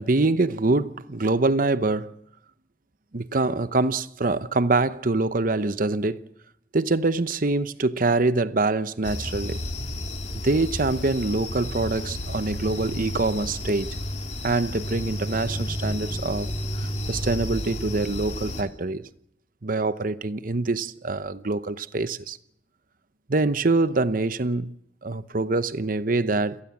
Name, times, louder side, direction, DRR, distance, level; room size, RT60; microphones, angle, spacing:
voice 1, 0.0-2.1 3.1-6.2 6.7-9.6 10.4-13.9 14.4-16.5 16.7-19.1 19.6-22.4 23.3-24.7 25.0-26.6, right 3 dB, 50° right, 0.8 m, -25 dB
sound 1, 9.0-18.6, left 1 dB, 40° left, 2.9 m, -32 dB
29.0 x 18.5 x 7.2 m
head